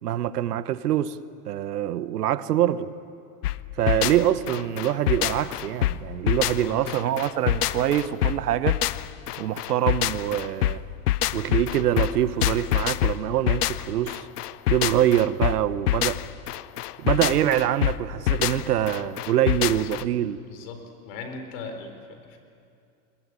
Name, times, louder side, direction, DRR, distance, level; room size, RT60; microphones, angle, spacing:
voice 1, 0.0-1.2 1.5-2.9 3.8-8.8 9.4-10.8 11.3-14.2 14.7-16.2 17.0-20.4, right 12 dB, 90° right, 15 dB, 1.1 m, -24 dB
sound 1, 3.4-20.0, left 14 dB, 85° left, 0.8 m, -26 dB
voice 2, 3.8-4.2 6.6-7.0 19.7-20.0 20.4-22.4, left 4 dB, 60° left, 6 dB, 4.4 m, -40 dB
21.5 x 21.0 x 9.7 m, 2.5 s
hypercardioid pair, 120°, 45 cm